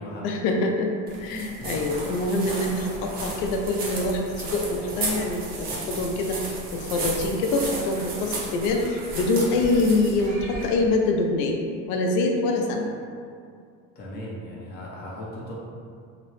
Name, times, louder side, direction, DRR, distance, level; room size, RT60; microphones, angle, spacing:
voice 1, 0.2-11.6 11.9-12.9, left 2 dB, 85° left, 2 dB, 0.5 m, -25 dB
sound 1, 1.1-11.0, right 2 dB, 30° right, 0.3 m, -34 dB
voice 2, 14.0-15.5, left 1 dB, 30° left, -5 dB, 0.5 m, -37 dB
2.8 x 2.1 x 3.0 m, 2.3 s
cardioid pair, 160°, 35 cm